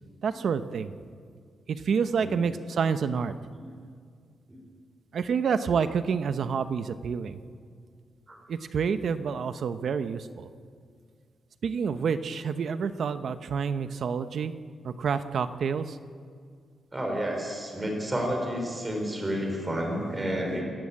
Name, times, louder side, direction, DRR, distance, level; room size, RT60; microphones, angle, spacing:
voice 1, 0.2-0.9 1.7-3.3 5.1-7.4 8.5-10.3 11.6-14.5 14.8-15.8, right 6 dB, 55° right, 11 dB, 0.9 m, -28 dB
voice 2, 16.9-20.6, equal, 15° right, 1 dB, 4.2 m, -30 dB
27.0 x 14.0 x 8.5 m, 2.1 s
wide cardioid pair, 180°, 0 cm